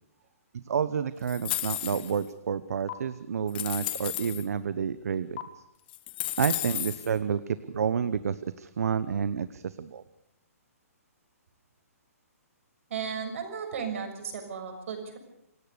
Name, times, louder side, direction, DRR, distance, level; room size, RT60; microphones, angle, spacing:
voice 1, 0.5-5.4 6.4-10.0, right 7 dB, 70° right, 14 dB, 1.0 m, -30 dB
sound 1, 1.3-2.2 2.9-3.0 3.5-4.4 5.4-5.5 5.9-7.1, left 14 dB, 35° left, 1.8 m, -33 dB
voice 2, 12.9-15.2, right 6 dB, 55° right, 6 dB, 6.6 m, -35 dB
27.5 x 18.0 x 6.9 m, 0.82 s
hypercardioid pair, 155°, 8 cm